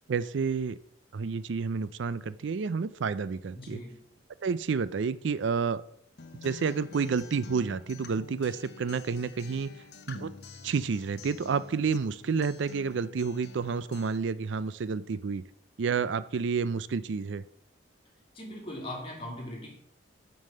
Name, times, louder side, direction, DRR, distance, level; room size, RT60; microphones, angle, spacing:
voice 1, 0.1-0.8 1.1-3.8 4.4-5.8 6.4-9.7 10.1-10.3 10.6-15.4 15.8-17.4, right 5 dB, 80° right, 16 dB, 0.4 m, -30 dB
voice 2, 3.5-4.0 18.3-19.7, left 1 dB, 30° left, -1 dB, 2.6 m, -40 dB
Acoustic guitar, 6.2-14.2, left 4 dB, 60° left, 0.7 m, -48 dB
7.5 x 5.4 x 6.5 m, 0.71 s
head